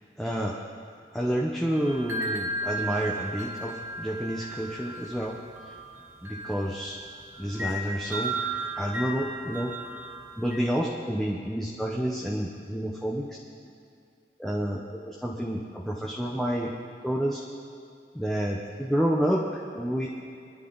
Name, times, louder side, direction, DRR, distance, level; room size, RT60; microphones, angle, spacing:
voice 1, 0.2-0.6 1.1-5.4 6.2-7.0 7.4-8.4 8.8-9.7 10.4-13.3 14.4-16.7 17.0-17.4 18.1-20.1, equal, ahead, -3 dB, 0.9 m, -29 dB
sound 1, 1.7-10.7, right 2 dB, 15° right, 2.4 m, -35 dB
24.5 x 11.0 x 4.0 m, 2.4 s
head